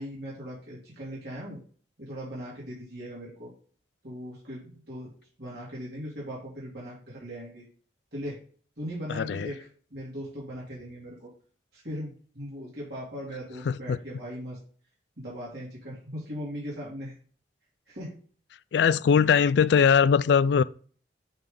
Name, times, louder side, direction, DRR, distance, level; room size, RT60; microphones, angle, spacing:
voice 1, 0.0-1.6 2.0-3.5 4.0-5.1 5.4-7.6 8.1-8.4 8.8-9.6 9.9-11.3 11.7-14.6 15.2-17.1 17.9-18.1, equal, 60° right, 3.0 m, -39 dB
voice 2, 9.1-9.5 13.7-14.0 18.7-20.6, left 6 dB, 70° left, 0.3 m, -21 dB
8.8 x 3.5 x 3.9 m
head